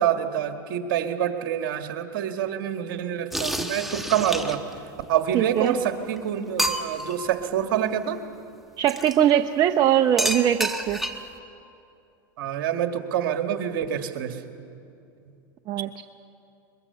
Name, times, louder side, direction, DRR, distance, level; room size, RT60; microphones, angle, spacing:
voice 1, 0.0-4.6 5.1-8.2 12.4-14.4, right 9 dB, 70° right, 6 dB, 1.9 m, -26 dB
sound 1, 3.3-4.8 5.7-5.8 6.1-6.2 6.6-7.1 8.9-9.2 10.2-11.4, right 1 dB, ahead, 1.6 m, -28 dB
voice 2, 5.3-5.8 8.8-11.0 15.7-16.0, right 10 dB, 40° right, 6 dB, 0.8 m, -21 dB
22.5 x 22.0 x 6.9 m, 2.7 s
hypercardioid pair, 105°, 11 cm